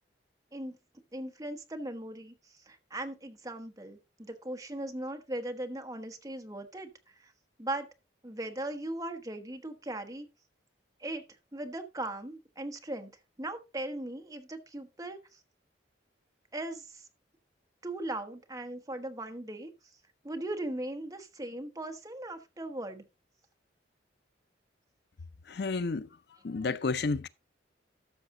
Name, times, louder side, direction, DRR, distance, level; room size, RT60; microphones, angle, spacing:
voice 1, 1.1-2.3 2.7-6.9 7.6-7.9 8.2-10.3 11.0-11.2 11.5-13.1 13.4-15.2 16.5-17.0 17.8-19.7 20.2-23.0, right 1 dB, 20° right, 1.2 m, -38 dB
voice 2, 25.5-26.1 26.4-27.3, left 4 dB, 60° left, 0.5 m, -31 dB
13.0 x 6.5 x 3.8 m
head